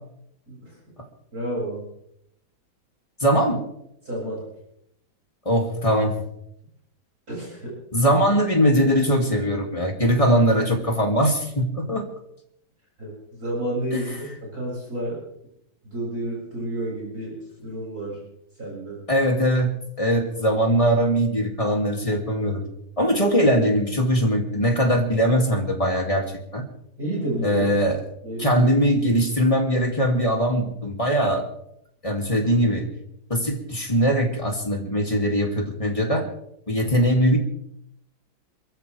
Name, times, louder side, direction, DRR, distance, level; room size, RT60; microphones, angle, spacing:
voice 1, 1.3-1.8 4.0-4.4 7.3-7.7 8.0-8.1 13.0-14.1 14.5-15.2 15.8-18.2 18.6-19.0 27.0-27.7 28.2-28.7, right 1 dB, 45° right, -5 dB, 7.5 m, -30 dB
voice 2, 3.2-3.6 5.4-6.2 7.9-12.0 13.9-14.2 19.1-19.7 20.0-22.6 23.0-26.2 26.5-26.6 27.4-28.0 28.4-31.4 32.0-32.9 33.3-36.3 36.7-37.4, equal, 15° left, 1 dB, 2.8 m, -21 dB
27.5 x 14.5 x 3.5 m, 0.75 s
omnidirectional pair, 2.2 m